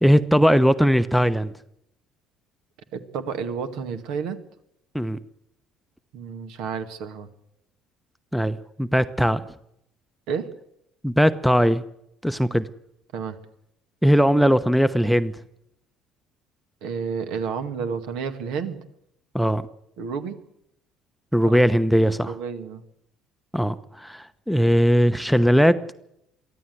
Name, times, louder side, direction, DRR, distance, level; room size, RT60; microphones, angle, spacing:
voice 1, 0.0-1.5 4.9-5.2 8.3-9.4 11.0-11.8 12.2-12.7 14.0-15.3 19.3-19.7 21.3-22.3 23.5-25.8, equal, ahead, 11 dB, 0.9 m, -19 dB
voice 2, 2.9-4.4 6.1-7.3 10.3-10.5 13.1-13.4 16.8-18.8 20.0-20.4 21.4-21.6 22.3-22.8, right 6 dB, 65° right, 8 dB, 2.0 m, -30 dB
23.5 x 15.0 x 8.0 m, 0.79 s
figure-of-eight pair, 55°, 0 cm